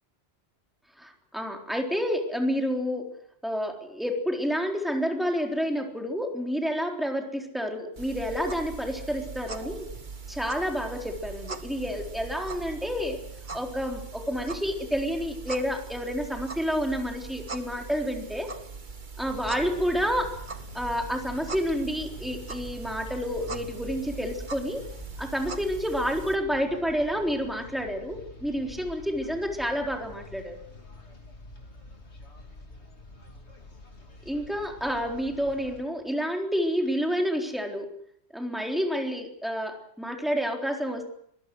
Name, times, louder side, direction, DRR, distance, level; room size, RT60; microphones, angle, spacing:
voice 1, 1.0-3.1 3.4-9.9 10.3-13.2 13.5-18.5 19.2-20.4 20.7-24.8 25.2-30.6 34.3-37.9 38.3-41.0, equal, ahead, 3 dB, 3.8 m, -29 dB
sound 1, 8.0-26.4, right 4 dB, 45° right, 1.5 m, -41 dB
sound 2, 19.2-35.8, left 2 dB, 85° left, 3.3 m, -47 dB
24.0 x 20.5 x 7.8 m, 0.70 s
omnidirectional pair, 1.1 m